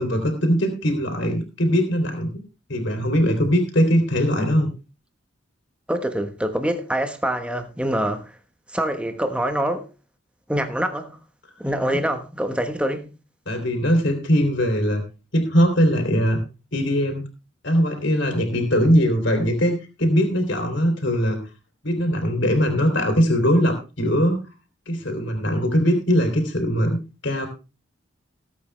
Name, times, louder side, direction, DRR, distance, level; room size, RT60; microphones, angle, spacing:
voice 1, 0.0-2.4 2.7-4.7 11.9-12.0 13.5-15.0 15.3-16.4 16.7-17.3 17.6-21.4 21.8-24.4 24.9-27.5, equal, 70° left, 3.1 m, -21 dB
voice 2, 5.9-8.3 8.7-9.9 10.5-11.2 11.6-13.1, right 1 dB, 5° right, 1.3 m, -25 dB
18.5 x 8.4 x 3.3 m
head